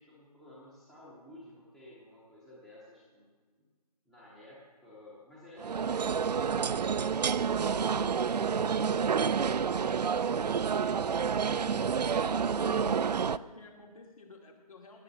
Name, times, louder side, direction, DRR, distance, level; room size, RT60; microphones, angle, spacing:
voice 1, 0.0-3.3 3.6-3.7 4.1-8.8, left 1 dB, ahead, -7 dB, 0.7 m, -54 dB
sound 1, 5.6-13.4, right 6 dB, 85° right, 0.5 m, -29 dB
voice 2, 12.8-15.0, left 3 dB, 60° left, 2 dB, 2.6 m, -52 dB
17.5 x 10.0 x 4.0 m, 1.5 s
hypercardioid pair, 165°, 20 cm